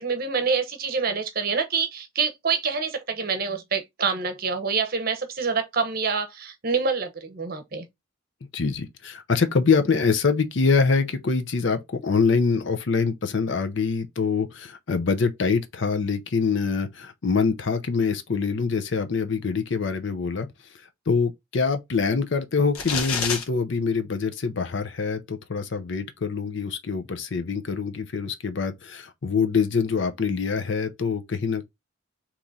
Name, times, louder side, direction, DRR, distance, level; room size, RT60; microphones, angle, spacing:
voice 1, 0.0-7.8, right 5 dB, 45° right, 0.8 m, -26 dB
voice 2, 8.5-20.5 20.7-31.7, left 5 dB, 55° left, 0.6 m, -25 dB
sound 1, 22.8-23.4, left 5 dB, 85° left, 1.1 m, -27 dB
3.6 x 3.0 x 3.9 m
head